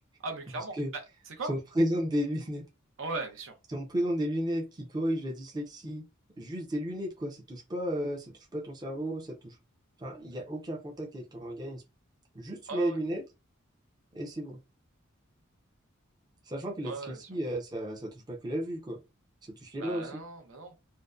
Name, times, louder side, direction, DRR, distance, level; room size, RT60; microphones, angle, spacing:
voice 1, 0.2-1.5 3.0-3.6 12.7-13.0 16.8-17.3 19.8-20.7, right 3 dB, 70° right, 0.6 m, -38 dB
voice 2, 1.5-2.6 3.7-6.0 6.4-9.5 10.0-11.8 12.3-13.2 14.1-14.6 16.5-19.0 19.5-20.2, equal, 20° right, 0.5 m, -33 dB
2.6 x 2.1 x 2.3 m
head